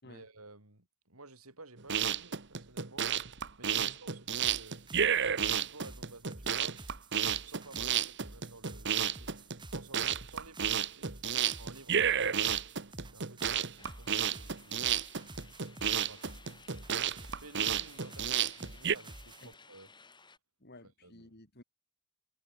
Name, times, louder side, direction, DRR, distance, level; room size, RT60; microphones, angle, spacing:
voice 1, 0.0-3.1 3.6-4.8 5.2-6.8 7.3-9.4 9.7-11.1 11.6-12.6 13.0-14.9 16.0-16.4 16.9-19.9 20.8-21.4, right 3 dB, 80° right, 6.1 m, -54 dB
sound 1, 1.8-19.0, right 8 dB, 55° right, 1.7 m, -31 dB
sound 2, 4.4-19.5, right 1 dB, 20° right, 2.3 m, -51 dB
sound 3, 13.8-20.4, left 4 dB, 20° left, 6.0 m, -58 dB
voice 2, 20.6-21.6, left 1 dB, 50° left, 4.4 m, -53 dB
head